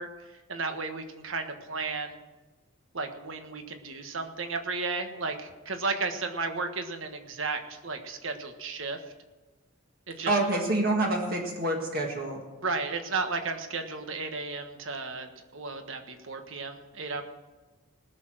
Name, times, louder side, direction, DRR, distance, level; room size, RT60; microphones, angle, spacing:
voice 1, 0.0-2.2 2.9-9.0 10.1-10.4 12.6-17.2, right 4 dB, 70° right, 6 dB, 1.4 m, -34 dB
voice 2, 10.3-12.4, right 2 dB, 45° right, 0 dB, 1.8 m, -27 dB
19.5 x 6.8 x 6.2 m, 1.2 s
head